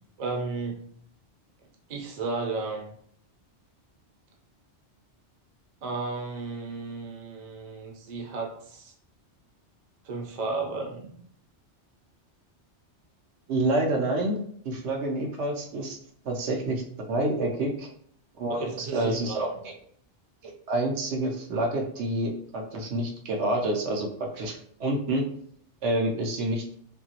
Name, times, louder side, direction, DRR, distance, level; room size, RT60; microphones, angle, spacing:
voice 1, 0.2-0.8 1.9-2.9 5.8-8.9 10.0-11.2 18.5-19.4, right 3 dB, 45° right, -1 dB, 0.7 m, -33 dB
voice 2, 13.5-16.0 16.2-16.8 17.1-17.9 18.4-19.7 20.4-24.1 24.3-25.2 25.8-26.6, right 1 dB, 75° right, 1 dB, 0.9 m, -28 dB
2.8 x 2.6 x 2.8 m, 0.63 s
omnidirectional pair, 1.2 m